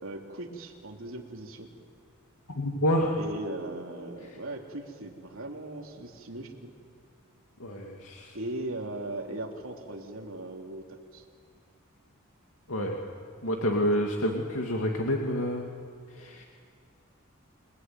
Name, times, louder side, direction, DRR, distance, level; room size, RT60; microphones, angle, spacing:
voice 1, 0.0-1.7 3.2-6.7 8.3-11.2, right 1 dB, 70° right, 1 dB, 3.4 m, -38 dB
voice 2, 2.6-3.2 7.6-8.4 12.7-13.0 13.4-15.7 16.1-16.4, equal, 90° left, 1 dB, 2.3 m, -28 dB
29.0 x 21.0 x 9.5 m, 2.2 s
head